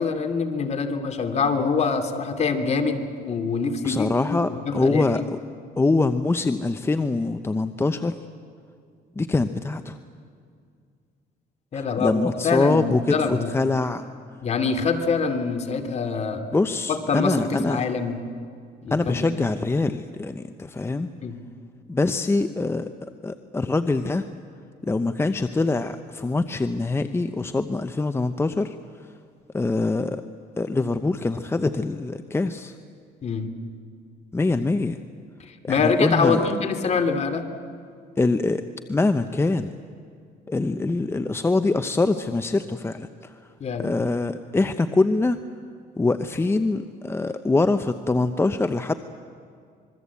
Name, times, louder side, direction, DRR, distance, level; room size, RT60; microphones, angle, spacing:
voice 1, 0.0-5.0 11.7-13.5 14.4-16.4 16.9-18.2 18.8-19.2 21.2-21.4 33.2-33.5 35.5-37.5 43.6-44.1, left 5 dB, 40° left, 6 dB, 2.6 m, -25 dB
voice 2, 3.8-5.4 5.8-8.2 9.2-10.0 11.7-14.0 16.5-17.8 18.9-21.1 21.9-22.9 23.2-24.2 24.8-28.8 29.5-30.2 30.6-32.7 34.3-35.0 35.6-36.4 38.2-38.6 38.9-39.7 40.5-43.3 43.8-45.4 46.0-48.9, left 3 dB, 15° left, 10 dB, 0.7 m, -24 dB
26.0 x 22.0 x 8.4 m, 2.3 s
cardioid pair, 110°, 17 cm